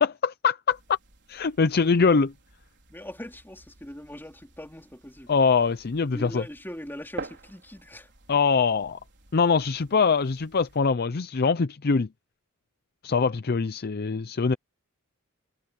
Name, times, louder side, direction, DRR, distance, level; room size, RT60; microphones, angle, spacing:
voice 1, 0.0-1.0 1.3-2.3 5.3-6.4 8.3-9.0 9.3-12.1 13.0-14.6, left 5 dB, 45° left, 0.5 m, -23 dB
sound 1, 0.7-10.8, right 3 dB, 55° right, 4.4 m, -48 dB
voice 2, 2.9-5.3 6.1-8.1, left 1 dB, 10° left, 4.2 m, -41 dB
head